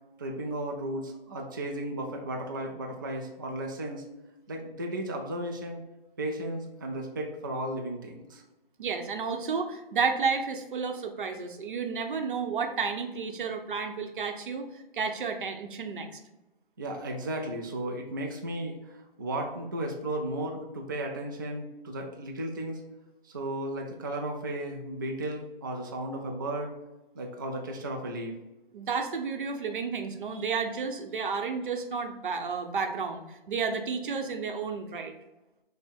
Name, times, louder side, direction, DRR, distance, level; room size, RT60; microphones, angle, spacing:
voice 1, 0.2-4.0 4.5-5.8 6.2-8.4 16.8-22.8 23.2-26.7 27.1-28.3, right 1 dB, 25° right, 1 dB, 0.3 m, -34 dB
voice 2, 8.8-16.1 28.7-35.1, right 5 dB, 60° right, 5 dB, 0.8 m, -31 dB
5.5 x 2.1 x 4.3 m, 1.0 s
figure-of-eight pair, 145°, 29 cm